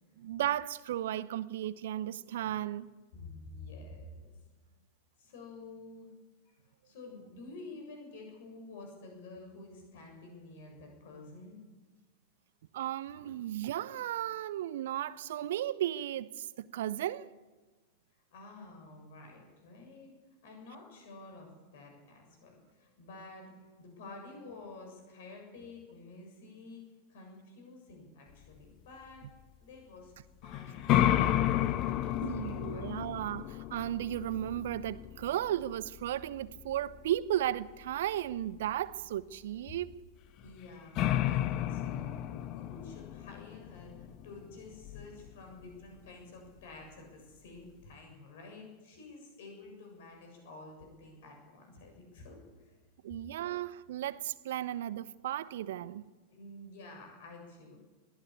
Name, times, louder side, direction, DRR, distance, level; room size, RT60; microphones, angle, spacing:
voice 1, 0.2-2.9 12.7-17.3 32.2-40.0 53.0-56.0, right 12 dB, 55° right, 0.8 m, -35 dB
voice 2, 3.1-4.3 5.2-6.1 6.4-6.5 6.8-11.6 13.1-13.3 18.3-20.1 20.4-26.8 27.1-29.3 29.6-30.1 30.4-31.3 31.7-32.8 40.4-52.8 56.3-57.8, left 2 dB, 55° left, 7.4 m, -50 dB
sound 1, 30.4-37.2 40.5-40.6 41.0-45.3, left 12 dB, 40° left, 1.0 m, -32 dB
21.5 x 16.5 x 8.7 m
figure-of-eight pair, 90°, 0 cm